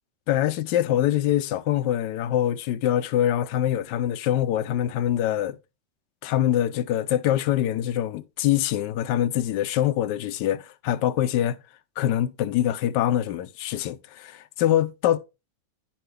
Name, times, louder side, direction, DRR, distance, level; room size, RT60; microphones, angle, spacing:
voice 1, 0.3-5.6 6.2-11.6 12.0-15.2, left 12 dB, 80° left, 1.2 m, -24 dB
10.0 x 4.5 x 3.2 m
omnidirectional pair, 1.9 m